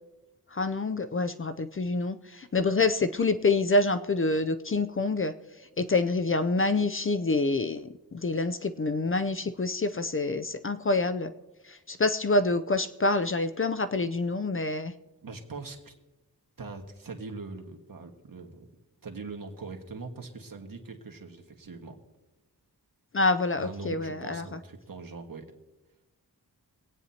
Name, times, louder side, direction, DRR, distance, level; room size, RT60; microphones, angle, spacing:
voice 1, 0.5-5.3 5.8-11.3 11.6-14.9 23.1-24.6, left 3 dB, 35° left, 11 dB, 0.5 m, -27 dB
voice 2, 15.2-15.9 16.6-18.7 19.0-22.0 23.6-25.5, right 3 dB, 60° right, 3 dB, 1.7 m, -41 dB
24.0 x 9.1 x 2.9 m, 1.1 s
wide cardioid pair, 65°, 39 cm